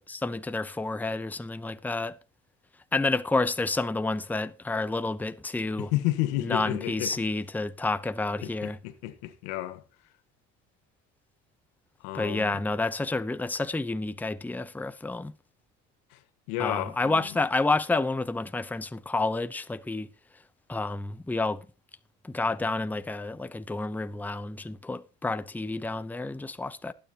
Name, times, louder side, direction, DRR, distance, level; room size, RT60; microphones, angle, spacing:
voice 1, 0.1-2.2 2.9-5.9 6.4-8.8 12.1-15.3 16.6-20.1 20.7-21.7 22.2-26.9, left 3 dB, 5° left, 0.7 m, -29 dB
voice 2, 5.8-7.3 8.4-9.8 12.0-12.6 16.5-17.2, left 15 dB, 90° left, 1.5 m, -31 dB
20.0 x 9.5 x 2.9 m
cardioid pair, 110°, 31 cm